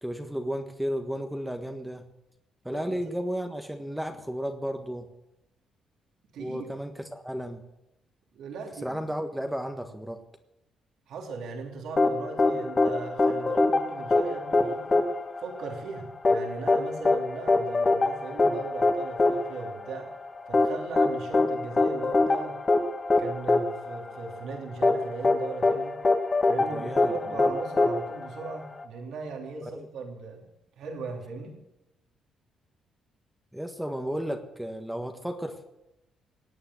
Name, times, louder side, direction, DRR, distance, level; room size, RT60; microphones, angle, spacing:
voice 1, 0.0-2.1 2.6-5.1 6.4-7.6 8.8-10.2 26.7-27.1 29.6-29.9 33.5-35.6, equal, 5° right, 5 dB, 1.5 m, -33 dB
voice 2, 2.7-3.0 6.3-6.7 8.3-9.0 11.1-15.0 15.4-20.1 20.5-22.6 23.1-26.0 26.5-30.4 30.8-31.6, right 4 dB, 75° right, 1 dB, 3.2 m, -38 dB
sound 1, 12.0-28.8, left 3 dB, 30° left, 2.0 m, -24 dB
18.5 x 9.1 x 7.6 m, 0.89 s
cardioid pair, 90°, 0 cm